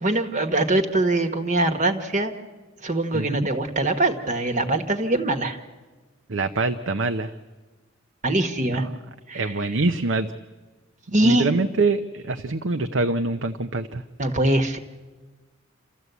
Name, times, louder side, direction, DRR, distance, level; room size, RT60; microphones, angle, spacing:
voice 1, 0.0-2.3 2.8-5.6 8.2-8.9 9.3-9.5 11.1-11.5 14.2-14.8, right 2 dB, 40° right, 6 dB, 1.4 m, -22 dB
voice 2, 3.1-3.5 6.3-7.3 8.7-8.8 9.3-10.3 11.2-14.0, right 3 dB, 70° right, 7 dB, 0.8 m, -24 dB
28.5 x 14.0 x 8.2 m, 1.3 s
head